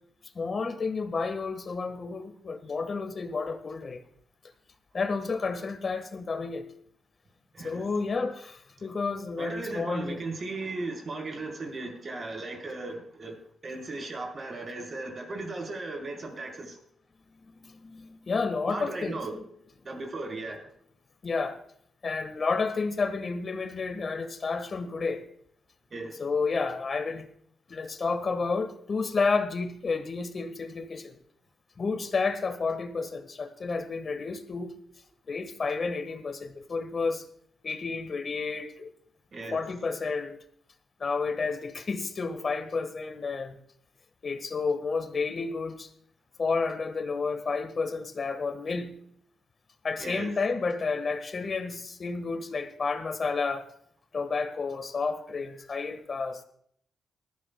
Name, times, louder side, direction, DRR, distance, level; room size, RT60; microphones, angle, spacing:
voice 1, 0.3-4.0 4.9-6.6 7.6-10.3 17.6-19.4 21.2-21.6 22.0-25.2 26.2-27.3 27.7-31.2 31.8-34.8 35.3-37.3 37.6-38.9 39.5-40.4 41.0-43.6 44.2-45.9 46.4-49.0 49.8-53.7 54.1-56.4, left 4 dB, 45° left, 1.5 m, -31 dB
voice 2, 7.5-7.9 9.4-16.8 18.7-19.4 19.8-20.6 25.9-26.2 39.3-39.6 50.0-50.3, right 2 dB, 45° right, 4.1 m, -36 dB
19.5 x 13.5 x 2.3 m
cardioid pair, 90°, 0 cm